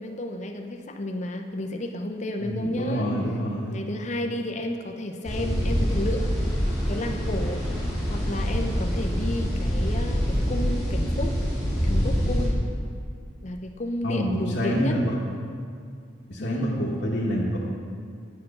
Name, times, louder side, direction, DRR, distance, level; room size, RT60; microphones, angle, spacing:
voice 1, 0.0-3.1 3.7-6.3 6.9-7.6 8.1-11.3 11.8-12.6 13.4-15.0 16.4-16.8, left 1 dB, 35° left, 4 dB, 0.6 m, -32 dB
voice 2, 2.4-3.8 14.0-15.1 16.3-17.6, equal, 55° left, -7 dB, 1.1 m, -27 dB
sound 1, 5.2-12.5, equal, ahead, 2.4 m, -25 dB
9.3 x 6.7 x 5.3 m, 2.3 s
head